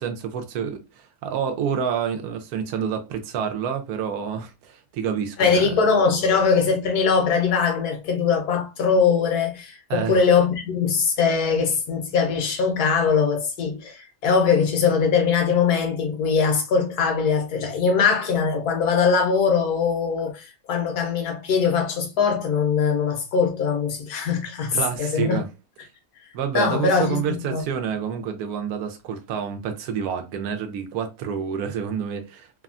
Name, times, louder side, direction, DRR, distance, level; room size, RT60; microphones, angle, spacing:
voice 1, 0.0-5.7 9.9-10.3 24.7-25.5 26.3-32.6, right 7 dB, 80° right, 1.1 m, -28 dB
voice 2, 5.4-25.4 26.5-27.2 27.5-27.6, left 5 dB, 85° left, 1.3 m, -21 dB
3.3 x 2.1 x 2.4 m
omnidirectional pair, 1.6 m